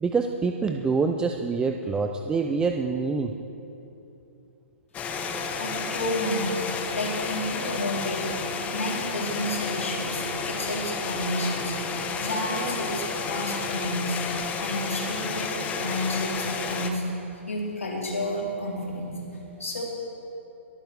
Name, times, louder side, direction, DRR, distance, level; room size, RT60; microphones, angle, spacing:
voice 1, 0.0-3.3, right 4 dB, 10° right, 5 dB, 0.6 m, -26 dB
sound 1, 4.9-16.9, left 4 dB, 20° left, 1.2 m, -31 dB
voice 2, 5.6-6.5 6.9-8.4 8.7-11.8 12.2-14.2 14.6-17.0 17.5-19.2 19.6-19.8, left 1 dB, 80° left, -3 dB, 4.2 m, -30 dB
22.0 x 9.1 x 6.5 m, 2.9 s
figure-of-eight pair, 120°, 7 cm